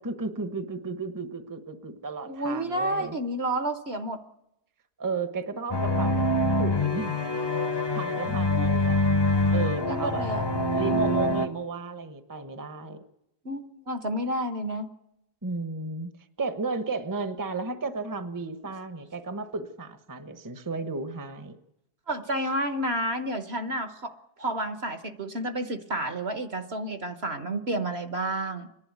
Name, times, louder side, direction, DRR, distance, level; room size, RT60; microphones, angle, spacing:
voice 1, 0.0-3.1 5.0-6.2 6.6-7.2 7.9-9.0 9.5-10.2 10.7-13.0 15.4-16.1 16.4-21.6, right 3 dB, 15° right, 10 dB, 1.0 m, -33 dB
voice 2, 2.3-4.2 8.6-8.7 9.9-10.4 13.4-14.9 22.1-24.1 24.4-28.7, right 1 dB, 45° right, 9 dB, 1.3 m, -30 dB
sound 1, 5.7-11.5, left 1 dB, 20° left, 0.9 m, -25 dB
28.0 x 11.0 x 9.3 m, 0.86 s
omnidirectional pair, 1.6 m